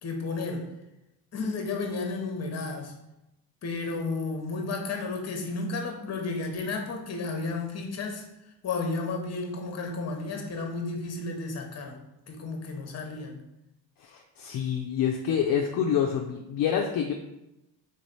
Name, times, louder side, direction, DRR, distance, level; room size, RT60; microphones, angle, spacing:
voice 1, 0.0-0.7 1.3-2.9 3.6-8.3 8.6-12.0 12.3-13.4, left 3 dB, 40° left, 3 dB, 0.9 m, -32 dB
voice 2, 14.0-17.1, left 8 dB, 60° left, 1 dB, 0.5 m, -27 dB
3.7 x 3.2 x 4.0 m, 0.90 s
cardioid pair, 120°, 40 cm